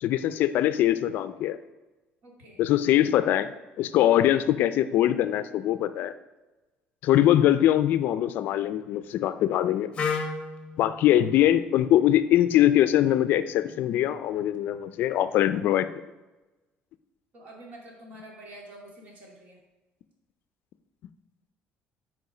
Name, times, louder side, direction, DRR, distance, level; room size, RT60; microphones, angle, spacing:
voice 1, 0.0-1.6 2.6-3.5 3.8-6.1 7.0-9.9 10.8-15.9, left 12 dB, 60° left, 12 dB, 0.4 m, -22 dB
voice 2, 2.2-2.7 17.3-19.6, right 1 dB, 45° right, 0 dB, 2.1 m, -47 dB
Wind instrument woodwind instrument, 9.9-13.8, left 5 dB, 30° left, 1.0 m, -36 dB
8.2 x 4.7 x 4.9 m, 1.1 s
cardioid pair, 170°, 4 cm